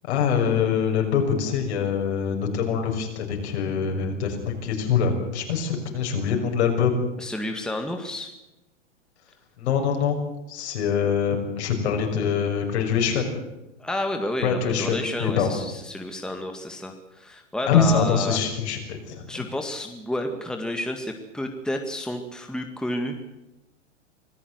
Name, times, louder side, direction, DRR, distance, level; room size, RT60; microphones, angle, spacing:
voice 1, 0.1-7.0 9.6-10.2 10.5-13.3 14.4-15.5 17.7-19.3, left 7 dB, 60° left, 3 dB, 6.5 m, -24 dB
voice 2, 7.2-8.3 13.8-18.4 19.3-23.3, left 1 dB, ahead, 4 dB, 2.0 m, -30 dB
25.0 x 15.0 x 8.1 m, 0.97 s
hypercardioid pair, 115°, 37 cm